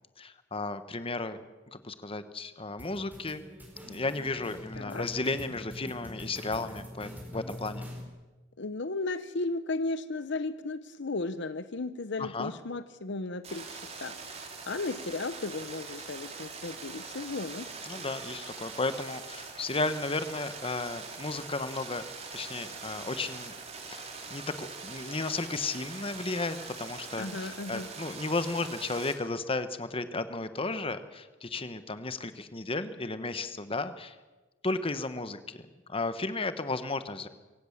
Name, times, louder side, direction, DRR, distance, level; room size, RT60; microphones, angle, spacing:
voice 1, 0.2-1.4 1.7-3.4 3.9-7.9 12.2-12.5 17.8-22.0 22.3-23.5 23.9-34.2 34.6-37.3, left 3 dB, 30° left, 11 dB, 1.2 m, -34 dB
sound 1, 2.8-8.0, left 1 dB, 10° right, 4.7 m, -44 dB
voice 2, 4.8-5.1 8.6-17.7 27.2-27.9, left 3 dB, 65° left, 12 dB, 0.9 m, -35 dB
sound 2, 13.4-29.1, right 4 dB, 35° right, 3.2 m, -43 dB
23.5 x 17.0 x 7.4 m, 1.2 s
head